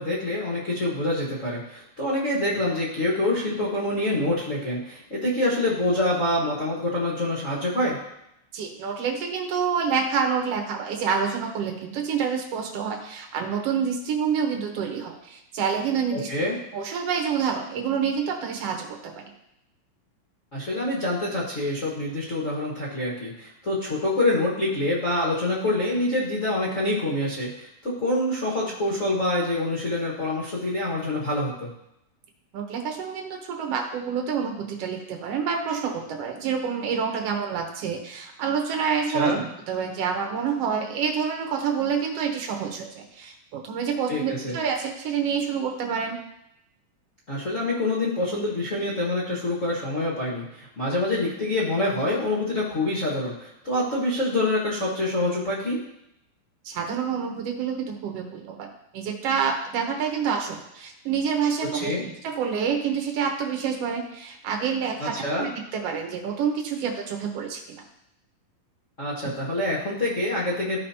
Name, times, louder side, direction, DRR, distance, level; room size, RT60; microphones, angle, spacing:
voice 1, 0.0-8.0 16.1-16.5 20.5-31.7 39.1-39.4 44.1-44.6 47.3-55.8 61.7-62.0 65.0-65.5 69.0-70.8, left 1 dB, 40° left, -7 dB, 1.1 m, -26 dB
voice 2, 8.5-16.3 16.7-19.3 32.5-46.2 56.7-58.7 58.9-67.8, right 6 dB, 60° right, 2 dB, 1.7 m, -28 dB
14.0 x 5.2 x 2.9 m, 0.81 s
omnidirectional pair, 3.9 m